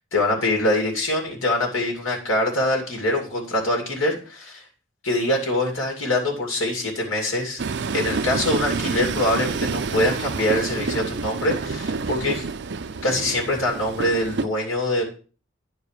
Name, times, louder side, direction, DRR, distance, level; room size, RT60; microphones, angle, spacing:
voice 1, 0.1-4.6 5.0-7.6 7.9-12.5 13.0-15.0, left 1 dB, 80° left, 0 dB, 2.5 m, -24 dB
Train, 7.6-14.4, right 4 dB, 60° right, 0.6 m, -28 dB
10.0 x 4.7 x 6.5 m, 0.38 s
head